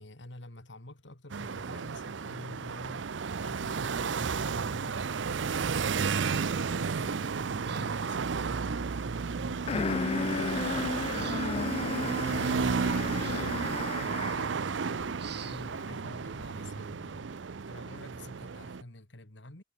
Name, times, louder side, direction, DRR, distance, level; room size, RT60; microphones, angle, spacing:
voice 1, 0.0-17.3 17.6-19.6, left 1 dB, 75° left, 2.8 m, -48 dB
sound 1, 1.3-18.8, right 5 dB, 80° right, 0.6 m, -32 dB
Breathing, 7.1-7.3 7.6-8.2 9.2-9.5 10.1-10.3 10.7-11.8 12.2-12.4 13.2-13.6 14.3-14.5 15.2-15.7, right 7 dB, 60° right, 2.2 m, -46 dB
sound 2, 9.7-14.6, left 4 dB, 30° left, 0.3 m, -34 dB
head